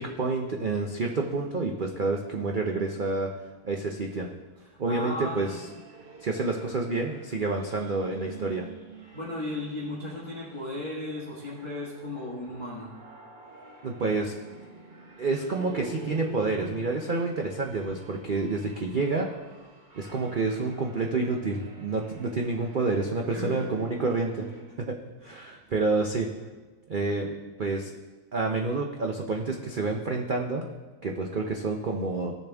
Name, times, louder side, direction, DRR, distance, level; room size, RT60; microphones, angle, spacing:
voice 1, 0.0-3.3 3.6-4.3 4.8-5.5 6.2-8.7 13.8-14.3 15.2-19.3 19.9-24.5 24.8-24.9 25.2-26.3 26.9-27.9 28.3-30.6 31.0-32.3, right 3 dB, 70° right, 1 dB, 0.4 m, -28 dB
voice 2, 4.7-5.6 9.1-12.9 23.2-23.9, left 2 dB, 15° left, -7 dB, 1.4 m, -35 dB
sound 1, 5.0-24.8, right 4 dB, 35° right, 0.9 m, -47 dB
16.0 x 7.0 x 3.4 m, 1.3 s
omnidirectional pair, 1.9 m